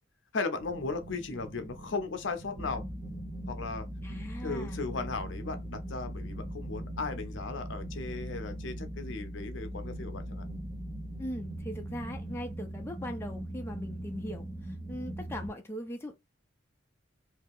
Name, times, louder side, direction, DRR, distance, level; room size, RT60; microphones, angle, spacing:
voice 1, 0.3-2.8 3.5-10.4, left 3 dB, 70° left, 0.6 m, -37 dB
sound 1, 0.5-15.5, right 1 dB, 20° right, 0.7 m, -40 dB
voice 2, 4.0-4.8 11.2-14.4 14.9-16.1, equal, 10° left, 0.5 m, -40 dB
2.8 x 2.4 x 3.6 m
head